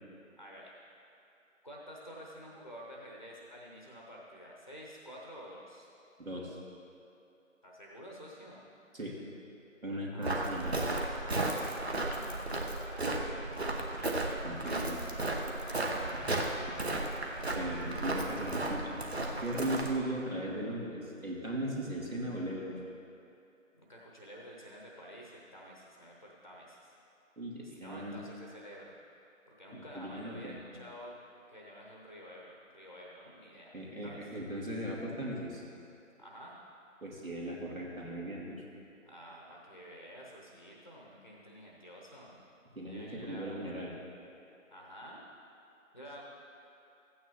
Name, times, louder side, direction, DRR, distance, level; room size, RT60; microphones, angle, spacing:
voice 1, 0.4-0.7 1.6-5.9 7.6-8.6 10.1-13.7 15.6-16.5 17.3-18.2 19.4-19.7 23.7-26.9 27.5-28.9 29.5-31.2 31.5-33.7 34.0-34.3 36.2-36.6 39.0-42.4 42.9-43.8 44.7-45.2 45.9-46.2, equal, 25° left, -3 dB, 0.8 m, -50 dB
voice 2, 6.2-6.6 8.9-9.2 9.8-10.7 14.4-15.0 17.5-18.9 19.4-22.7 27.4-28.2 29.7-30.6 33.7-35.6 37.0-38.6 42.8-43.9, right 1 dB, 85° right, -3 dB, 2.7 m, -38 dB
Walk footsteps, 10.2-20.0, right 2 dB, 50° right, 1.0 m, -34 dB
15.5 x 9.2 x 3.0 m, 2.8 s
figure-of-eight pair, 160°, 40 cm